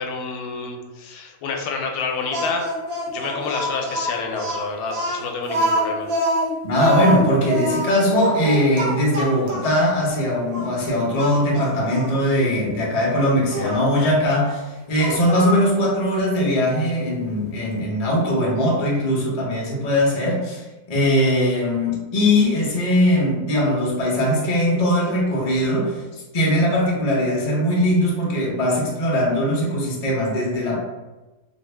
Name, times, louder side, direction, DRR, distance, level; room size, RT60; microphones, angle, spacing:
voice 1, 0.0-2.7 3.1-6.1, left 4 dB, 90° left, 2 dB, 1.1 m, -28 dB
Speech, 2.3-9.9 10.5-10.7 11.2-12.1 13.5-13.8 15.0-15.7, equal, 85° right, 0.3 m, -25 dB
voice 2, 6.6-26.0 26.3-30.8, left 1 dB, 35° left, -3 dB, 0.6 m, -20 dB
2.8 x 2.6 x 3.2 m, 1.1 s
omnidirectional pair, 1.5 m